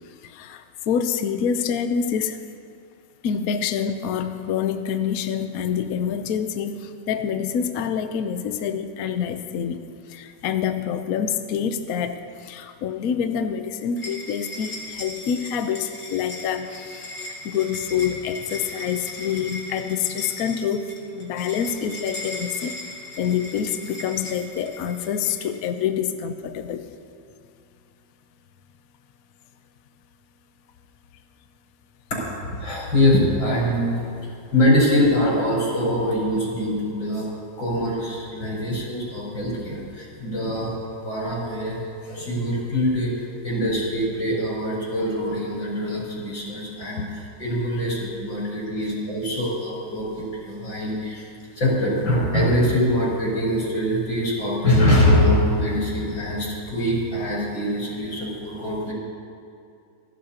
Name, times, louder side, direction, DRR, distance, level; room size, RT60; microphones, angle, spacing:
voice 1, 0.0-2.4 3.2-9.8 10.1-22.8 23.2-26.9 38.4-38.5 40.2-40.3 42.2-42.3, left 7 dB, 65° left, 8 dB, 1.0 m, -27 dB
sound 1, 14.0-25.6, left 1 dB, 40° left, 2.6 m, -38 dB
voice 2, 32.1-34.0 34.5-37.3 37.6-40.7 41.0-51.2 51.6-58.9, left 1 dB, 80° left, -6 dB, 5.3 m, -23 dB
28.5 x 11.5 x 2.9 m, 2.5 s
omnidirectional pair, 2.1 m